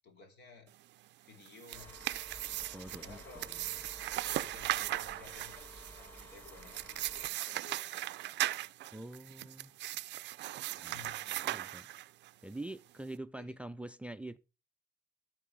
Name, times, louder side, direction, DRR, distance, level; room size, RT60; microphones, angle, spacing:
voice 1, 0.0-0.7 1.2-1.9 3.0-3.6 4.3-8.5 10.9-11.6 13.4-13.6, left 4 dB, 70° left, 2.8 m, -56 dB
sound 1, 1.4-12.3, right 15 dB, 85° right, 0.4 m, -38 dB
sound 2, 1.7-7.3, equal, 10° left, 1.8 m, -53 dB
voice 2, 2.7-3.2 3.5-3.6 8.9-9.7 10.8-11.1 11.4-11.9 12.4-14.4, right 2 dB, 5° right, 0.4 m, -45 dB
13.0 x 4.7 x 5.0 m
cardioid pair, 130°, 18 cm